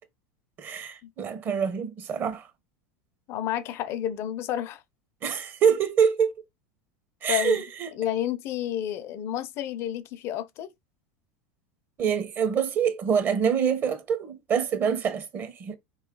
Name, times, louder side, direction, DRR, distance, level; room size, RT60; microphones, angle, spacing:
voice 1, 0.6-2.4 5.2-6.3 7.2-7.9 12.0-15.8, right 7 dB, 40° right, 1.5 m, -25 dB
voice 2, 3.3-4.8 7.3-7.6 7.9-10.7, left 11 dB, 50° left, 0.8 m, -30 dB
4.3 x 3.2 x 3.9 m
hypercardioid pair, 95°, 6 cm